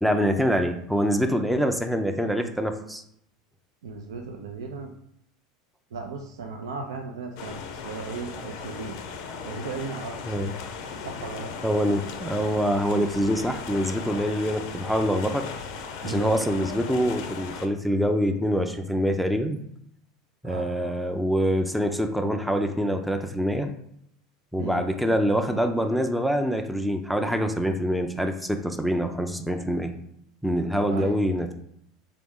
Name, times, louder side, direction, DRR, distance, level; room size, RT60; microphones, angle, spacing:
voice 1, 0.0-3.0 10.3-10.5 11.6-15.4 16.0-19.6 20.4-23.7 24.5-29.9 30.4-31.5, equal, ahead, 5 dB, 0.4 m, -25 dB
voice 2, 3.8-4.9 5.9-7.6 7.8-9.0 9.4-10.5 10.9-11.5 16.0-16.4 20.4-21.0 24.6-24.9 30.9-31.3, right 4 dB, 85° right, 3 dB, 0.4 m, -36 dB
sound 1, 7.4-17.7, left 5 dB, 65° left, 0.5 m, -37 dB
3.5 x 2.9 x 3.6 m, 0.72 s
hypercardioid pair, 90°, 2 cm